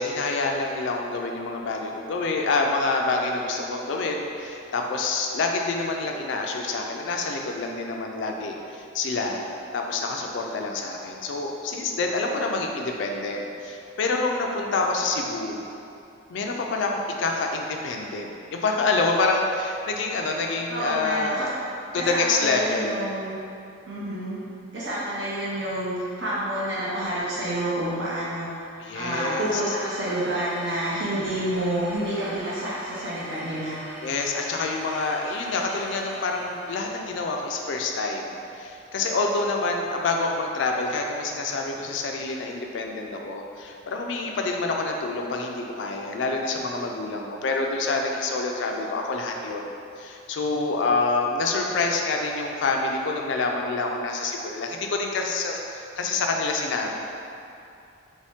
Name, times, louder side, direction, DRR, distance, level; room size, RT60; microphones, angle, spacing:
voice 1, 0.0-9.4 9.7-15.6 16.3-21.5 21.9-23.0 28.8-29.7 34.0-49.7 50.0-56.9, left 3 dB, 65° left, 1 dB, 0.4 m, -27 dB
voice 2, 20.7-21.5 21.9-23.3 23.8-24.4 24.7-28.7 28.9-33.8, right 1 dB, 60° right, -9 dB, 0.7 m, -29 dB
sound 1, 29.4-36.9, right 1 dB, 5° right, 0.5 m, -41 dB
3.1 x 2.7 x 3.4 m, 2.6 s
head